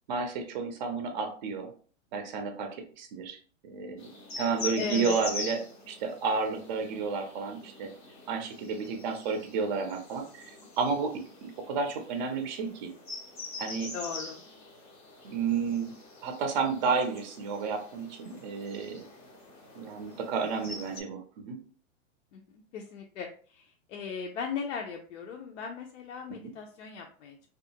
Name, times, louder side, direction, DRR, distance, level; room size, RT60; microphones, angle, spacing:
voice 1, 0.1-1.7 2.1-2.7 3.0-3.4 3.6-4.0 4.4-7.9 8.3-11.1 11.4-12.9 13.6-13.9 15.2-15.9 16.2-19.0 19.8-21.6 26.4-26.5, right 5 dB, 40° right, 5 dB, 0.5 m, -31 dB
sound 1, 4.0-21.0, left 3 dB, 15° left, 0.5 m, -44 dB
voice 2, 4.8-5.1 13.8-14.4 22.3-27.4, left 6 dB, 70° left, 1 dB, 0.6 m, -38 dB
2.7 x 2.4 x 2.7 m, 0.42 s
hypercardioid pair, 160°, 37 cm